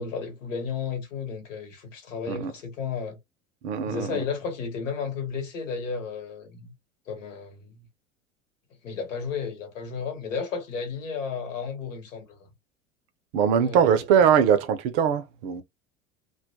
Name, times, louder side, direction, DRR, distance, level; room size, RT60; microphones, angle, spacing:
voice 1, 0.0-3.2 3.8-6.7 7.1-7.9 8.8-12.5 13.6-14.0, left 5 dB, 70° left, 1.1 m, -33 dB
voice 2, 3.6-4.2 13.3-15.6, right 8 dB, 45° right, 0.6 m, -22 dB
2.2 x 2.1 x 2.7 m
figure-of-eight pair, 75°, 40 cm